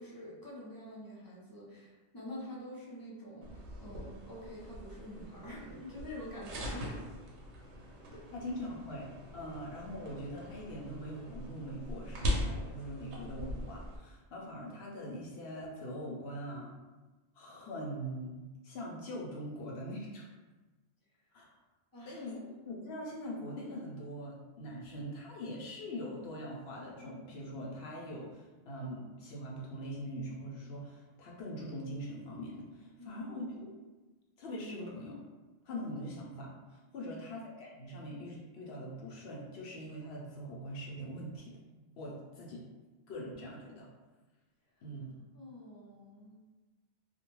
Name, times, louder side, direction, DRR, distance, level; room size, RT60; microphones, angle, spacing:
voice 1, 0.0-7.0 8.1-8.2 21.9-22.3 33.0-33.3 45.3-46.3, left 1 dB, 35° left, -6 dB, 0.3 m, -47 dB
sound 1, 3.4-14.0, left 1 dB, 75° right, 0.9 m, -41 dB
voice 2, 8.3-9.1 9.3-16.7 17.4-20.2 21.3-21.5 22.1-33.8 34.4-35.2 35.6-41.5 42.0-42.6 43.1-43.9 44.8-45.2, equal, 70° left, -3 dB, 0.8 m, -42 dB
2.5 x 2.1 x 2.9 m, 1.2 s
omnidirectional pair, 1.2 m